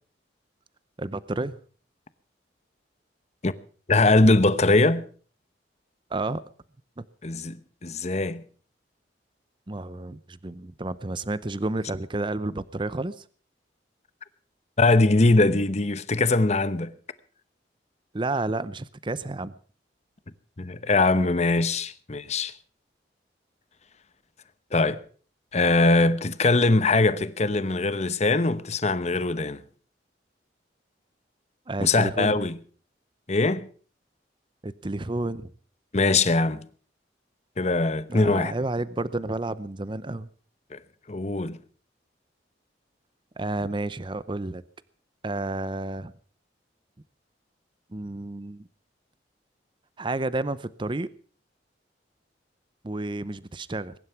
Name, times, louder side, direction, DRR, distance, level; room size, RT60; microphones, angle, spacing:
voice 1, 1.0-1.6 6.1-6.4 7.0-7.1 9.7-13.2 18.1-19.5 31.7-32.3 34.6-35.5 38.1-40.3 43.4-44.6 45.2-46.1 47.9-48.6 50.0-51.1 52.8-53.9, right 2 dB, 25° right, 0.7 m, -30 dB
voice 2, 3.9-5.0 7.2-8.4 14.8-16.9 20.6-22.5 24.7-25.0 25.5-29.6 31.8-32.6 33.3-33.7 35.9-36.6 37.6-38.5 40.7-40.8 41.1-41.6, left 2 dB, 40° left, 0.9 m, -22 dB
22.0 x 11.5 x 5.8 m
head